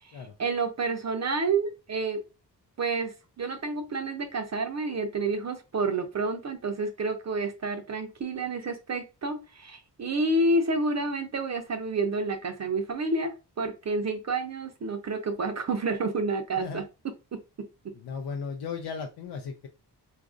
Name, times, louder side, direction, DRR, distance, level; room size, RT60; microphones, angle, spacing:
voice 1, 0.4-2.2 2.8-16.8 17.3-17.7, right 3 dB, 45° right, 0.5 m, -29 dB
voice 2, 16.5-16.9 17.9-19.7, left 5 dB, 80° left, 0.5 m, -36 dB
3.9 x 2.4 x 2.4 m
wide cardioid pair, 105°, 40 cm